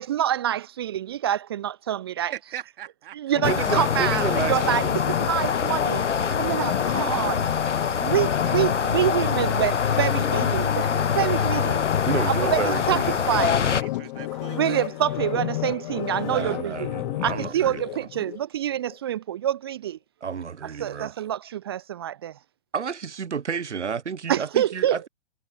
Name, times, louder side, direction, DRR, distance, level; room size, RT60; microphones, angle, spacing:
voice 1, 0.0-2.3 3.1-7.5 8.0-10.9 11.1-11.8 12.3-13.6 14.5-16.9 17.2-20.0 20.8-22.3 24.3-25.1, right 11 dB, 25° right, 0.4 m, -26 dB
voice 2, 2.3-3.4 7.5-9.6 9.9-10.1 12.1-12.3 13.3-13.4 13.8-14.8, right 11 dB, 50° right, 3.2 m, -42 dB
sound 1, 3.3-18.4 18.8-18.9, left 17 dB, 40° left, 2.2 m, -31 dB
sound 2, 3.4-13.8, left 6 dB, 90° left, 0.6 m, -25 dB
voice 3, 3.5-5.0 12.1-13.2 16.2-17.8 20.2-21.1 22.7-25.1, right 6 dB, 80° right, 0.8 m, -30 dB
figure-of-eight pair, 115°, 35 cm